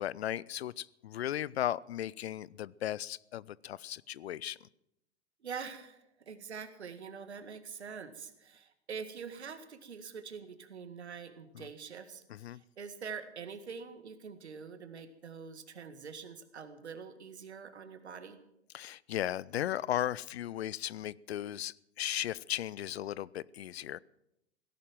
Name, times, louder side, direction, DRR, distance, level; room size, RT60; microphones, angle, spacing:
voice 1, 0.0-4.6 11.5-11.7 12.3-12.6 18.7-24.0, left 12 dB, 65° left, 23 dB, 0.6 m, -36 dB
voice 2, 5.4-12.2 12.5-18.4, right 6 dB, 75° right, 10 dB, 1.9 m, -45 dB
17.0 x 11.0 x 7.4 m, 0.84 s
figure-of-eight pair, 100°, 33 cm